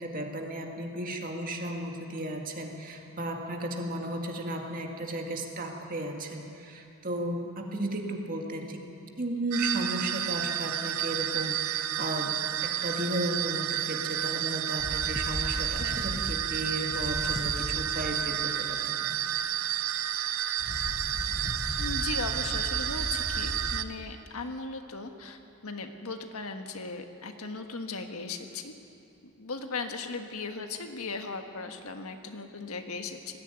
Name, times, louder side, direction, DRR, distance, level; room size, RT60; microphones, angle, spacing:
voice 1, 0.0-8.8 9.2-12.4 12.6-19.3, right 1 dB, 40° right, 2 dB, 2.0 m, -34 dB
sound 1, 9.5-23.8, right 10 dB, 80° right, 0.7 m, -31 dB
sound 2, 14.8-18.3 20.6-23.8, left 1 dB, 25° left, 0.9 m, -37 dB
voice 2, 21.8-28.7 29.4-33.4, left 3 dB, 90° left, 5 dB, 1.5 m, -37 dB
19.5 x 14.5 x 9.2 m, 2.7 s
head